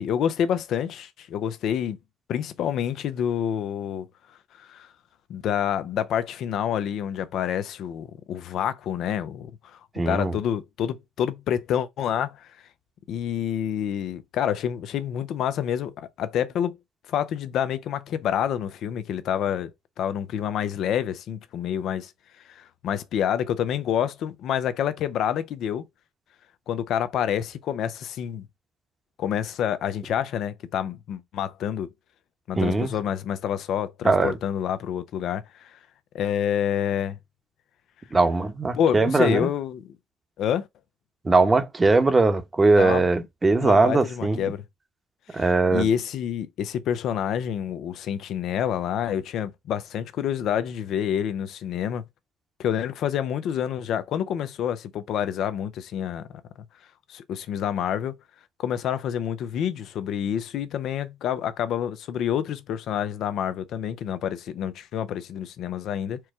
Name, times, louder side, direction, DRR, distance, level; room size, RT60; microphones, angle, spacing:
voice 1, 0.0-2.0 2.3-4.1 4.6-4.9 5.3-9.8 10.1-12.5 13.1-16.8 17.1-19.7 20.0-22.1 22.5-25.8 26.7-28.5 29.2-31.9 32.5-35.8 36.1-37.2 38.7-39.9 40.4-40.7 42.8-43.1 43.6-44.6 45.3-45.4 45.7-52.0 52.6-56.3 57.1-58.1 58.6-66.2, left 9 dB, 65° left, 0.5 m, -28 dB
voice 2, 9.9-10.3 32.6-32.9 34.0-34.4 38.1-39.5 41.2-44.5 45.3-45.9, right 3 dB, 25° right, 1.0 m, -20 dB
4.5 x 2.2 x 4.5 m
supercardioid pair, 70°, 0 cm